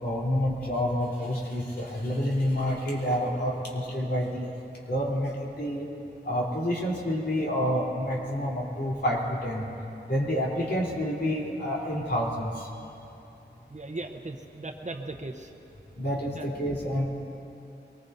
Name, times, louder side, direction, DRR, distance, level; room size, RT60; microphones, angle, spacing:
voice 1, 0.0-4.5 4.9-5.8 6.2-9.7 10.1-12.5 16.0-17.1, equal, 60° left, -5 dB, 3.7 m, -28 dB
voice 2, 13.7-15.5 16.2-16.5, right 2 dB, 40° right, 4 dB, 1.0 m, -38 dB
24.0 x 20.0 x 2.8 m, 2.9 s
wide cardioid pair, 85°, 19 cm